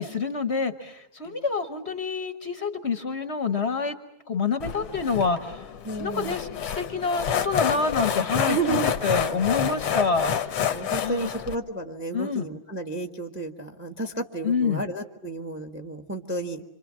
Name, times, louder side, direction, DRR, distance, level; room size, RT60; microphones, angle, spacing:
voice 1, 0.0-3.9 4.3-5.7 6.0-6.5 6.7-10.3 11.0-11.3 12.1-12.5 14.4-14.8, left 4 dB, 35° left, 8 dB, 1.2 m, -27 dB
sound 1, 4.6-11.6, left 8 dB, 85° left, 2.2 m, -28 dB
voice 2, 5.8-6.4 8.5-9.2 10.7-16.6, right 3 dB, 5° right, 5 dB, 1.0 m, -32 dB
27.0 x 26.5 x 7.5 m, 0.83 s
omnidirectional pair, 2.4 m